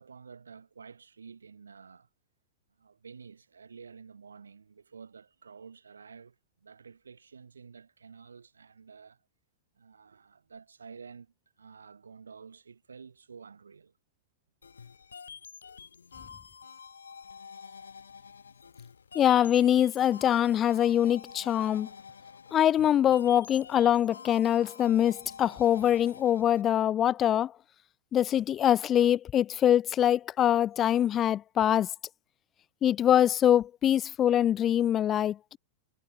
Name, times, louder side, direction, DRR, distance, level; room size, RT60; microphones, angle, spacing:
voice 1, 0.0-2.1 2.8-9.2 9.7-13.9, right 5 dB, 75° right, 5.7 m, -50 dB
sound 1, 14.6-26.6, left 6 dB, 70° left, 4.8 m, -48 dB
voice 2, 19.1-21.9 22.5-27.5 28.1-31.9 32.8-35.6, left 10 dB, 30° left, 0.9 m, -24 dB
figure-of-eight pair, 90°, 0 cm